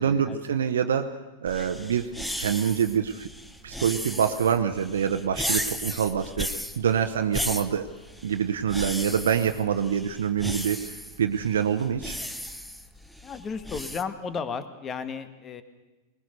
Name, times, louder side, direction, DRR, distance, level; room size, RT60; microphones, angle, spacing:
voice 1, 0.0-2.1 2.4-3.3 3.6-7.9 8.2-12.2, right 8 dB, 75° right, 6 dB, 0.9 m, -26 dB
sound 1, 1.5-14.0, equal, ahead, 1.0 m, -35 dB
voice 2, 13.2-15.6, left 5 dB, 25° left, 11 dB, 1.5 m, -34 dB
20.5 x 20.0 x 6.6 m, 1.1 s
hypercardioid pair, 100°, 0 cm